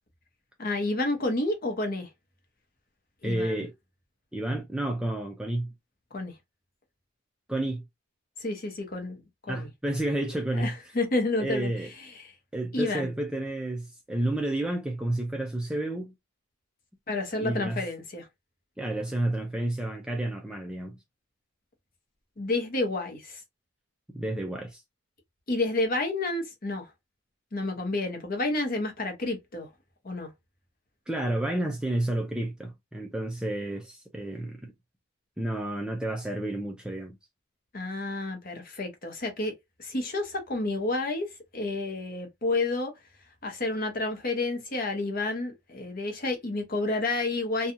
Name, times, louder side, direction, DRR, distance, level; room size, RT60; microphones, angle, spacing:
voice 1, 0.6-2.1 3.2-3.6 6.1-6.3 8.4-9.7 10.5-12.3 12.7-13.1 17.1-18.3 22.4-23.4 25.5-26.9 27.5-29.7 30.0-30.3 37.7-42.9 43.4-47.7, left 2 dB, 40° left, 0.8 m, -30 dB
voice 2, 3.2-3.7 4.3-5.7 7.5-7.8 9.5-10.7 11.4-11.9 12.5-16.1 17.4-17.8 18.8-21.0 24.1-24.8 31.1-34.7 35.4-37.1, right 1 dB, 5° right, 0.3 m, -30 dB
2.7 x 2.3 x 2.5 m
head